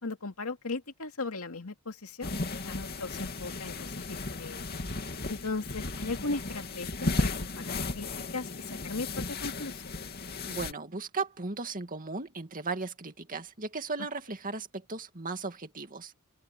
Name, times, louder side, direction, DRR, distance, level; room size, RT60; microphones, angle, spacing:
voice 1, 0.0-2.4 2.6-4.8 5.3-10.0, left 3 dB, 75° left, 2.4 m, -38 dB
sound 1, 2.2-10.7, left 2 dB, 45° left, 2.5 m, -35 dB
voice 2, 10.5-16.1, right 3 dB, 40° right, 2.3 m, -36 dB
open air
head